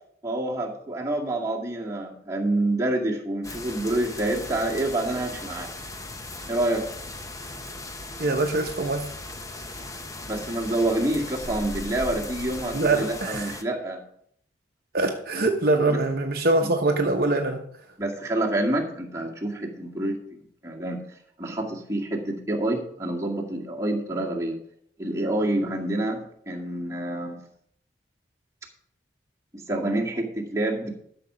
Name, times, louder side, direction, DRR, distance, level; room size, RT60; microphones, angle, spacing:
voice 1, 0.2-5.7 6.5-6.8 10.3-14.0 15.9-16.0 16.6-16.7 18.0-21.0 21.4-24.6 25.0-27.4 29.5-30.9, right 1 dB, 15° right, 2.0 m, -27 dB
sound 1, 3.4-13.6, left 2 dB, 20° left, 0.8 m, -38 dB
voice 2, 8.2-9.1 12.7-13.5 14.9-17.6, right 2 dB, 55° right, 0.8 m, -23 dB
12.5 x 6.7 x 4.9 m
head